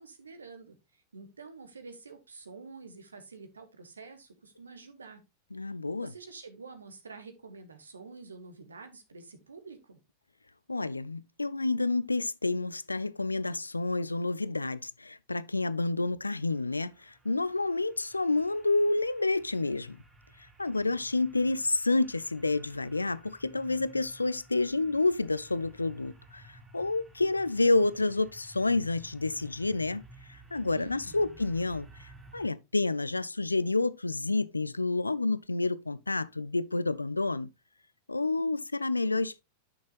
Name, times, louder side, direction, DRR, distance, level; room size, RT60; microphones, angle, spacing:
voice 1, 0.0-5.2 5.5-5.6 6.0-10.0 30.7-31.4, right 4 dB, 75° right, 1.4 m, -48 dB
voice 2, 5.5-6.1 10.7-20.0 20.6-30.0 30.3-37.5 38.1-39.4, left 3 dB, 80° left, 0.4 m, -29 dB
sound 1, 16.5-32.5, right 2 dB, 15° right, 1.8 m, -55 dB
9.7 x 6.3 x 2.5 m
figure-of-eight pair, 90°, 0 cm